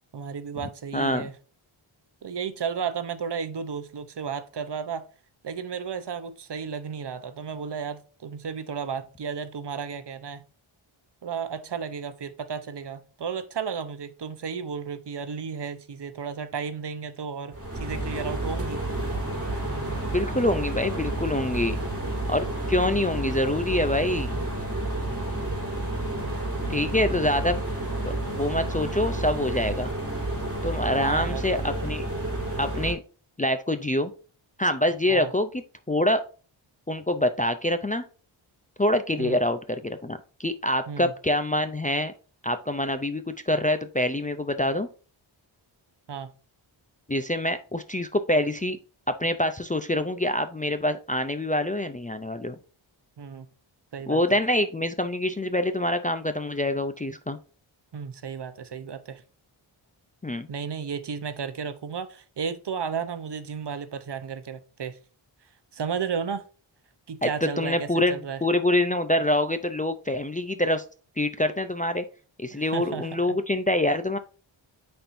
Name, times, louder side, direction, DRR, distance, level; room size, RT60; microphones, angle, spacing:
voice 1, 0.1-1.3 2.2-5.1 5.4-10.4 11.2-18.8 26.7-27.0 31.0-31.4 35.1-35.3 39.2-39.4 40.9-41.1 46.1-46.3 53.2-53.5 53.9-54.2 57.9-59.2 60.5-65.0 65.7-66.4 67.1-68.4 72.5-73.4, right 6 dB, 55° right, 0.8 m, -33 dB
voice 2, 0.9-1.3 20.1-21.8 22.3-24.4 26.7-27.6 28.1-29.9 30.6-32.1 32.6-33.0 33.4-34.1 34.6-36.2 36.9-38.0 38.8-42.1 42.4-44.9 47.1-48.8 49.1-52.6 54.1-57.4 60.2-60.5 67.2-67.3 67.6-70.8 71.2-72.0 72.4-74.2, left 1 dB, 15° left, 0.4 m, -25 dB
sound 1, 17.5-32.9, right 1 dB, 25° right, 3.2 m, -30 dB
8.9 x 4.4 x 2.6 m
wide cardioid pair, 120°, 49 cm